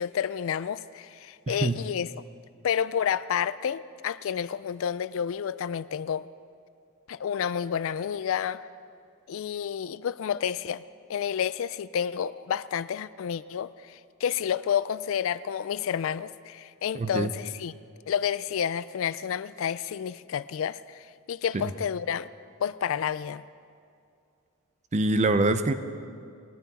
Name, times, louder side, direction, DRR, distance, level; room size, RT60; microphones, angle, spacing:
voice 1, 0.0-2.1 2.6-6.3 7.1-8.6 9.3-10.8 11.1-17.8 18.1-22.3 22.6-23.4, left 8 dB, 60° left, 17 dB, 0.3 m, -30 dB
voice 2, 1.5-1.8 16.9-17.3 21.5-21.7 24.9-25.7, right 2 dB, 30° right, 11 dB, 0.5 m, -24 dB
20.0 x 13.0 x 4.1 m, 2.4 s
head